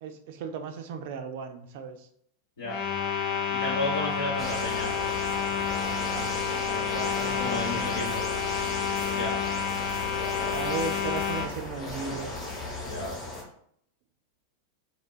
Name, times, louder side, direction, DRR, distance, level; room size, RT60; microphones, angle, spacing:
voice 1, 0.0-2.0 6.0-6.4 6.7-8.0 10.5-12.3, right 5 dB, 50° right, 6 dB, 0.3 m, -36 dB
sound 1, 2.6-11.5, left 7 dB, 40° left, 0.3 m, -30 dB
voice 2, 3.5-4.9 7.3-8.2 9.1-9.3 12.8-13.1, left 2 dB, 65° left, -6 dB, 0.7 m, -32 dB
sound 2, 4.4-13.4, left 2 dB, 20° left, 0.8 m, -36 dB
3.1 x 2.2 x 2.2 m, 0.67 s
figure-of-eight pair, 90°, 0 cm